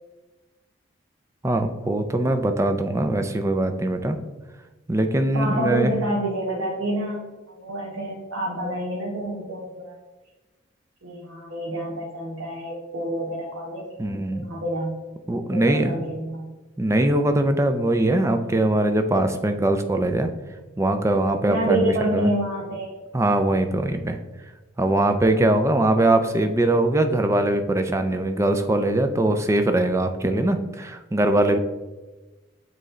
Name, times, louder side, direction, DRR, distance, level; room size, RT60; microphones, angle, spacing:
voice 1, 1.4-4.2 4.9-5.9 14.0-14.5 15.3-15.9 16.8-20.3 20.8-22.3 23.1-24.2 24.8-31.6, right 1 dB, 15° right, 7 dB, 0.3 m, -21 dB
voice 2, 5.3-10.0 11.0-13.8 14.3-14.9 15.3-16.5 21.5-22.9, right 1 dB, 90° right, -4 dB, 1.1 m, -28 dB
7.7 x 3.2 x 3.8 m, 1.2 s
head